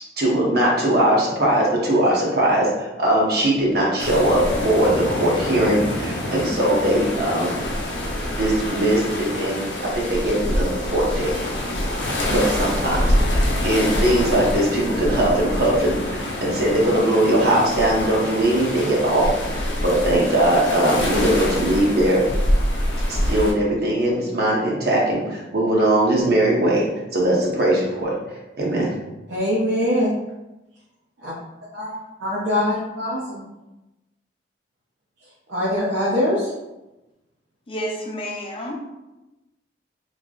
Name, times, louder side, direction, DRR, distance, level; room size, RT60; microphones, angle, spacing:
voice 1, 0.2-7.6 8.4-11.3 12.3-22.2 23.1-28.1 28.6-28.9, right 1 dB, 55° right, -3 dB, 0.9 m, -20 dB
sound 1, 4.0-23.5, left 1 dB, 80° left, 0.6 m, -25 dB
voice 2, 29.3-30.1 31.2-31.3 31.7-31.9 32.2-33.4 35.5-36.5, left 1 dB, 85° right, -7 dB, 0.7 m, -22 dB
voice 3, 37.7-38.9, equal, 30° left, -2 dB, 0.5 m, -30 dB
3.2 x 2.1 x 3.7 m, 1.0 s
head